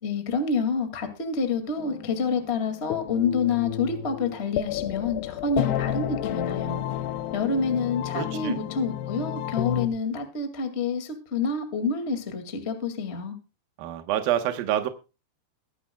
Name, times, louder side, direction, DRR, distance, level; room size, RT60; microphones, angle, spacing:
voice 1, 0.0-6.9 7.3-13.4, left 4 dB, 55° left, 0.7 m, -28 dB
sound 1, 1.8-9.9, left 12 dB, 75° left, 2.7 m, -31 dB
voice 2, 8.2-8.6 13.8-14.9, right 12 dB, 70° right, 2.4 m, -27 dB
22.5 x 9.8 x 2.3 m
omnidirectional pair, 5.2 m